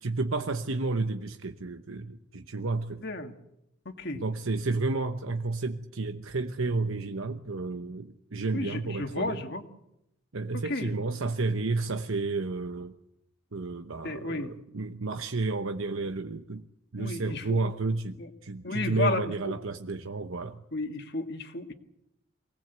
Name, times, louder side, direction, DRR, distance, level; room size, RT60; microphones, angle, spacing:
voice 1, 0.0-3.1 4.1-9.4 10.3-12.9 13.5-16.7 16.9-18.2 18.4-20.6, right 3 dB, 80° right, 7 dB, 1.0 m, -31 dB
voice 2, 3.0-3.3 3.9-4.2 8.5-9.6 10.5-10.9 14.0-14.5 17.0-17.6 18.2-18.3 18.6-19.5 20.7-21.7, left 2 dB, 50° left, 6 dB, 1.9 m, -33 dB
24.0 x 18.5 x 8.1 m, 0.83 s
head